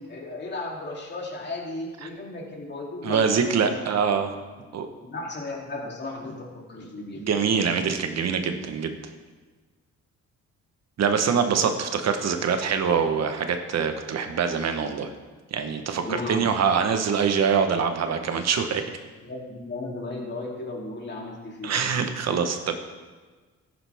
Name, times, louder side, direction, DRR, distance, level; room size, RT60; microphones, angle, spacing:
voice 1, 0.1-3.9 4.5-4.6 4.9-7.3 16.0-16.4 17.0-17.1 19.2-21.8, left 2 dB, 35° left, -2 dB, 3.1 m, -35 dB
voice 2, 3.0-4.3 4.7-4.9 7.3-9.0 11.0-15.1 15.5-18.8 21.6-22.7, right 6 dB, 60° right, 7 dB, 1.2 m, -24 dB
13.5 x 10.5 x 3.6 m, 1.4 s
cardioid pair, 90°, 30 cm